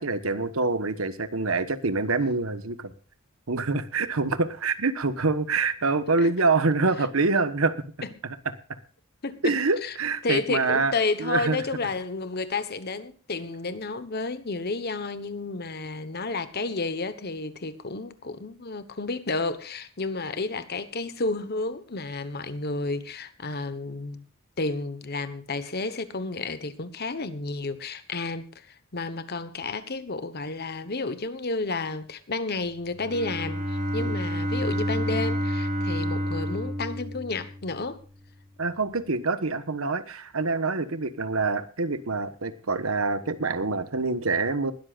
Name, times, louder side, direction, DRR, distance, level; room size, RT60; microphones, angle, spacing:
voice 1, 0.0-2.9 3.5-7.7 9.4-10.9 11.2-11.6 34.0-34.2 38.6-44.7, right 3 dB, 90° right, 1.2 m, -26 dB
voice 2, 9.2-10.0 10.2-24.2 24.6-38.0, left 3 dB, 50° left, 1.2 m, -31 dB
Bowed string instrument, 32.9-37.8, equal, 50° right, 3.9 m, -29 dB
20.5 x 13.0 x 2.5 m
head